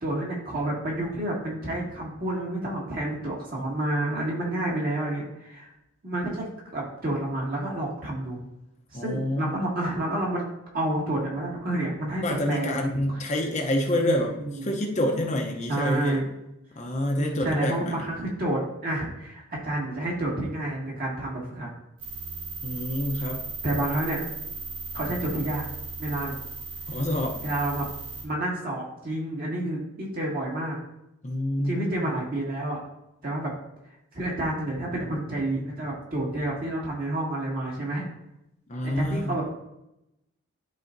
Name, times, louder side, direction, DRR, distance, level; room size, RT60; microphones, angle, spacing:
voice 1, 0.0-5.7 6.0-6.5 6.7-8.4 8.9-10.4 10.7-12.7 14.0-14.1 14.4-14.7 15.7-16.2 17.2-21.7 23.6-24.2 24.9-25.7 26.0-26.3 27.4-27.9 28.2-30.8 31.6-32.8 33.2-33.5 34.1-38.1 38.8-39.4, right 1 dB, 45° right, -4 dB, 2.0 m, -29 dB
voice 2, 8.9-9.5 12.2-16.2 16.8-18.0 22.6-23.5 26.9-27.4 31.2-32.0 38.7-39.4, left 1 dB, 35° left, 2 dB, 0.7 m, -27 dB
sound 1, 22.0-28.2, right 4 dB, 70° right, 1.4 m, -37 dB
12.0 x 4.1 x 2.6 m, 0.85 s
head